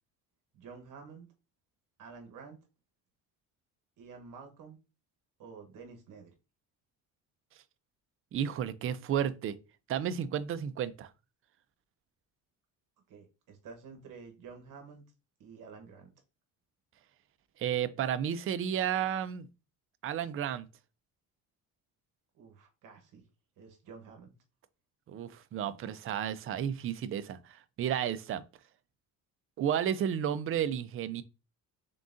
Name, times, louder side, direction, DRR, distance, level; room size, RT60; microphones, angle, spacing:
voice 1, 0.5-1.3 2.0-2.6 4.0-4.8 5.4-6.3 13.1-15.0 15.4-16.1 22.3-23.2 23.6-24.3, right 5 dB, 65° right, 1.0 m, -50 dB
voice 2, 8.3-9.6 9.9-11.1 17.6-19.5 20.0-20.7 25.1-28.4 29.6-31.2, right 9 dB, 40° right, 0.4 m, -32 dB
3.7 x 3.7 x 2.5 m
cardioid pair, 110°, 35 cm